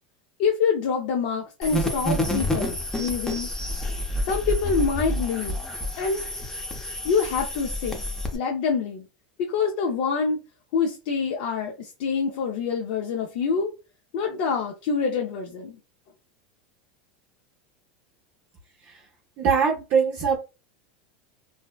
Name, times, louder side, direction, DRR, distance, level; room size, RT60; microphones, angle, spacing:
voice 1, 0.4-3.5 4.3-5.6 6.0-6.2 7.0-8.0 8.3-9.1 9.4-10.4 10.7-13.7 14.1-15.8, left 5 dB, 65° left, 0.5 m, -26 dB
sound 1, 1.6-8.4, equal, 10° left, 0.6 m, -29 dB
voice 2, 19.4-20.4, right 6 dB, 50° right, 0.6 m, -21 dB
2.6 x 2.0 x 2.3 m
supercardioid pair, 115°, 5 cm